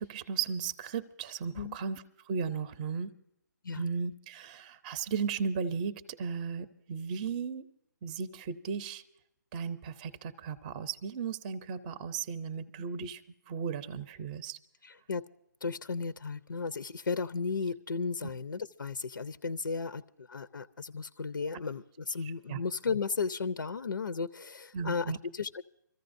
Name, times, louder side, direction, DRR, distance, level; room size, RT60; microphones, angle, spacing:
voice 1, 0.0-3.1 3.7-7.7 8.0-9.0 9.5-13.2 13.5-14.6 18.2-18.3 22.5-22.6 24.7-25.2, right 6 dB, 20° right, 14 dB, 0.6 m, -35 dB
voice 2, 14.8-15.3 15.6-25.6, left 5 dB, 90° left, 13 dB, 0.6 m, -35 dB
26.0 x 14.5 x 2.6 m, 0.79 s
hypercardioid pair, 155°, 11 cm